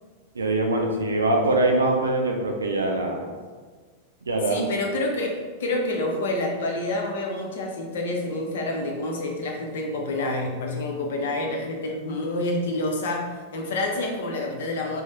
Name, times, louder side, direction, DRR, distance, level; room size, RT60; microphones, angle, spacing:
voice 1, 0.4-3.3 4.3-4.6, right 2 dB, 75° right, 2 dB, 0.3 m, -23 dB
voice 2, 4.5-15.0, left 2 dB, 60° left, 1 dB, 0.6 m, -28 dB
3.2 x 2.0 x 3.9 m, 1.5 s
figure-of-eight pair, 90°, 0 cm